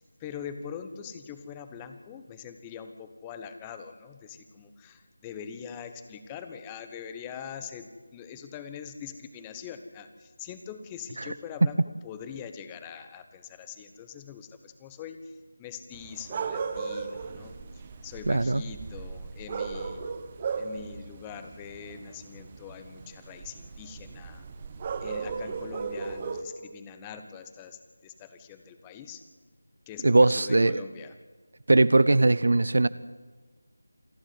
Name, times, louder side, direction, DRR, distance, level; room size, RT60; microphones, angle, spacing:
voice 1, 0.2-11.8 12.0-17.6 18.0-20.0 20.5-24.4 25.0-29.2 29.9-31.2, left 7 dB, 10° left, 1.1 m, -43 dB
sound 1, 15.9-26.4, right 5 dB, 25° right, 1.2 m, -37 dB
voice 2, 18.3-18.6 30.0-30.8 31.7-32.9, right 2 dB, 55° right, 0.6 m, -20 dB
27.5 x 10.5 x 9.7 m
figure-of-eight pair, 165°, 0 cm